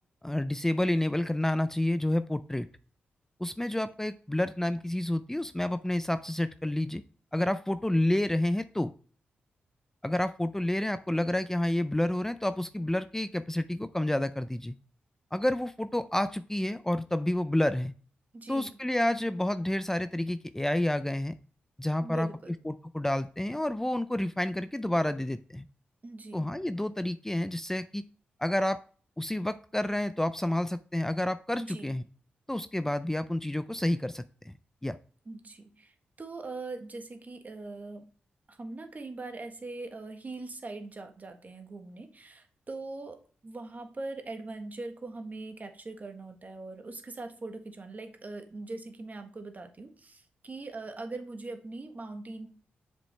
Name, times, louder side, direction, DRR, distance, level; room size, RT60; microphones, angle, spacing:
voice 1, 0.2-2.7 3.4-7.0 7.3-8.9 10.0-14.7 15.3-17.9 18.5-21.3 21.8-22.3 22.7-25.7 26.3-28.0 28.4-28.8 29.2-32.0 32.5-34.5 34.8-35.0, left 1 dB, 10° left, 12 dB, 0.4 m, -29 dB
voice 2, 18.3-18.8 22.0-22.5 26.0-26.5 31.6-32.0 35.2-38.1 38.5-52.5, right 2 dB, 40° right, 6 dB, 1.5 m, -41 dB
7.1 x 5.3 x 3.4 m, 0.42 s
supercardioid pair, 45°, 4 cm